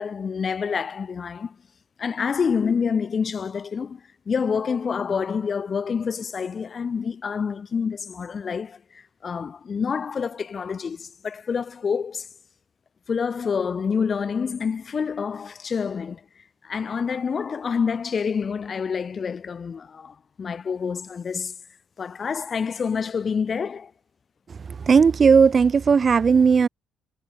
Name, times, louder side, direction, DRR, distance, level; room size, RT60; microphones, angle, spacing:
voice 1, 0.0-1.5 2.0-4.0 4.3-12.3 13.1-16.2 16.6-21.5 22.0-23.9, left 6 dB, 45° left, 1.1 m, -27 dB
voice 2, 24.9-26.7, right 5 dB, 40° right, 0.4 m, -16 dB
cardioid pair, 90°, 0 cm